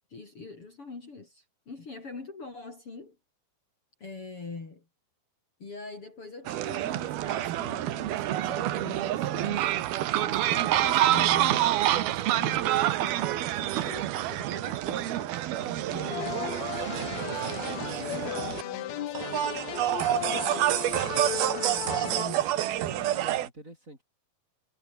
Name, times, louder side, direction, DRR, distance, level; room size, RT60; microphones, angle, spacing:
voice 1, 0.1-3.2 4.0-4.9 5.6-15.6 15.9-22.6, left 3 dB, 35° left, 4.8 m, -43 dB
sound 1, 6.5-18.6 19.2-23.5, right 13 dB, 80° right, 3.2 m, -28 dB
voice 2, 15.6-16.0 22.5-24.0, right 1 dB, 20° right, 7.6 m, -46 dB
sound 2, 16.1-23.1, left 12 dB, 65° left, 2.0 m, -36 dB
omnidirectional pair, 4.3 m